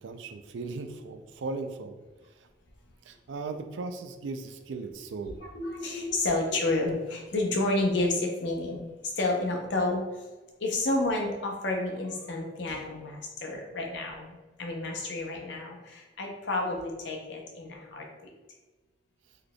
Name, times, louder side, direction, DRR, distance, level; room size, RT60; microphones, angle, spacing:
voice 1, 0.0-2.5 3.0-5.4, right 3 dB, 75° right, 7 dB, 0.4 m, -38 dB
voice 2, 5.4-8.8 9.2-10.0 10.6-18.3, left 2 dB, 70° left, 1 dB, 0.7 m, -30 dB
3.9 x 3.2 x 2.2 m, 1.2 s
head